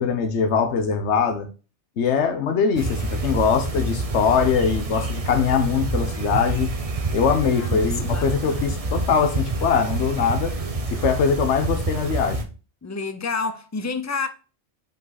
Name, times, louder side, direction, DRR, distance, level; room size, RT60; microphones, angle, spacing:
voice 1, 0.0-1.5 2.0-6.7 7.1-10.6 10.9-12.5, left 6 dB, 70° left, 1.2 m, -22 dB
sound 1, 2.8-12.4, right 2 dB, 35° right, 0.8 m, -27 dB
voice 2, 7.6-9.0 12.8-14.3, left 4 dB, 25° left, 0.4 m, -30 dB
5.3 x 5.1 x 4.0 m
omnidirectional pair, 1.3 m